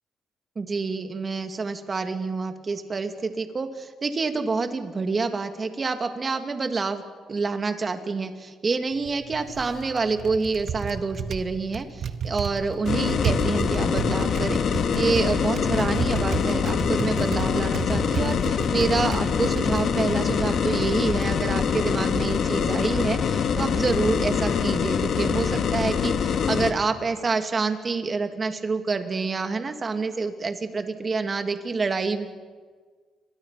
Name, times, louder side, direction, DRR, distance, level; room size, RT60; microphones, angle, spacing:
voice 1, 0.6-7.0 7.3-32.3, right 4 dB, 35° right, 7 dB, 2.6 m, -27 dB
Typing, 8.9-21.4, right 7 dB, 60° right, 1.6 m, -33 dB
sound 1, 12.9-26.7, left 7 dB, 65° left, 1.8 m, -24 dB
29.5 x 23.5 x 6.0 m, 1.5 s
cardioid pair, 90°, 0 cm